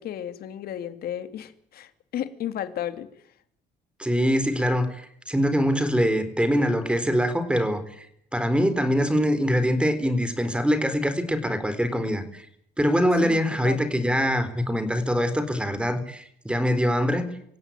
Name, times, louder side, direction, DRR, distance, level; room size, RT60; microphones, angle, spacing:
voice 1, 0.0-3.1 13.2-13.8, left 10 dB, 65° left, 11 dB, 2.6 m, -33 dB
voice 2, 4.0-8.1 8.3-12.5 12.8-17.3, equal, 5° right, 12 dB, 3.9 m, -24 dB
26.0 x 16.5 x 9.1 m, 0.69 s
cardioid pair, 110°, 17 cm